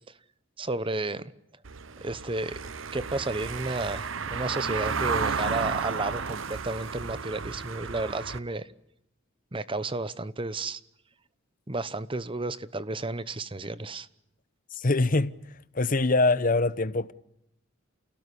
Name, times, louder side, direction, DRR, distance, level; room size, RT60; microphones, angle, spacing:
voice 1, 0.6-1.3 2.0-2.6 2.9-8.7 9.5-10.8 11.7-14.1, right 2 dB, 25° right, 1.0 m, -32 dB
Car passing by / Engine, 1.6-8.4, right 5 dB, 75° right, 0.9 m, -33 dB
voice 2, 14.7-15.4 15.7-17.1, left 2 dB, 40° left, 0.9 m, -24 dB
28.5 x 17.0 x 10.0 m
head